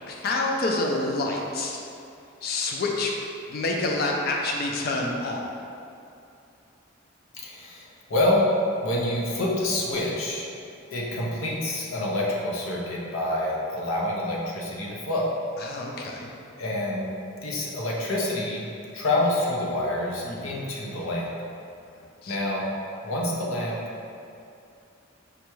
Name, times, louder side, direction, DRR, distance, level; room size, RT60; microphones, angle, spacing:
voice 1, 0.1-1.8 2.4-3.2 3.5-5.5 15.6-16.3 20.2-20.6 21.9-22.4, left 2 dB, 50° left, 0 dB, 0.4 m, -28 dB
voice 2, 7.4-8.4 8.8-10.4 10.9-15.3 16.0-16.1 16.6-17.1 17.4-18.7 18.9-21.3 22.3-22.7 23.0-23.8, left 1 dB, 85° left, -3 dB, 0.7 m, -27 dB
5.1 x 2.2 x 3.0 m, 2.6 s
head